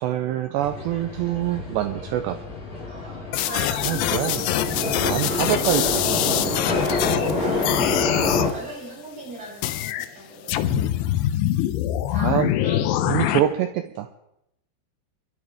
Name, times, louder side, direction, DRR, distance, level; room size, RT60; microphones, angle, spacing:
voice 1, 0.0-2.4 3.8-6.6 10.6-10.8 12.2-12.5 13.0-14.1, right 12 dB, 90° right, 8 dB, 2.4 m, -26 dB
sound 1, 0.6-8.5, left 3 dB, 35° left, 6.3 m, -27 dB
voice 2, 2.9-4.7 6.2-6.3 7.2-7.7 7.9-8.0 8.5-10.6 12.1-13.3, right 2 dB, 40° right, -6 dB, 9.4 m, -40 dB
sound 2, 3.3-7.3 7.6-8.5 9.6-10.1 10.5-13.4, left 13 dB, 80° left, 2.5 m, -24 dB
27.0 x 12.0 x 3.5 m, 0.82 s
omnidirectional pair, 5.7 m